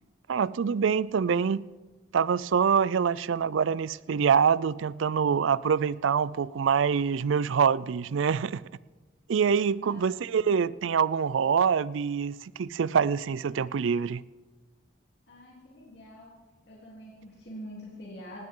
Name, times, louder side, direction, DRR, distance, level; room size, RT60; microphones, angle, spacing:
voice 1, 0.3-1.7 2.1-8.6 9.3-14.2, right 6 dB, 80° right, 0.4 m, -25 dB
voice 2, 9.8-10.3 15.3-16.3 16.7-18.4, equal, 60° left, 3.3 m, -45 dB
19.0 x 16.5 x 3.8 m
head